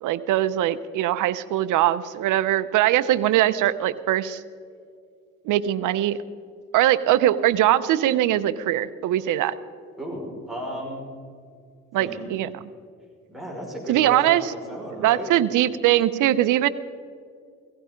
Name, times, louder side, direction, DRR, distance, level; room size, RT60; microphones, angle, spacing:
voice 1, 0.0-4.4 5.5-6.2 6.7-9.5 11.9-12.5 13.9-14.4 15.0-16.7, right 13 dB, 85° right, 13 dB, 0.7 m, -21 dB
voice 2, 10.0-11.0 12.0-12.4 13.3-15.3, equal, ahead, -2 dB, 5.2 m, -34 dB
17.0 x 15.5 x 5.1 m, 2.2 s
cardioid pair, 90°, 30 cm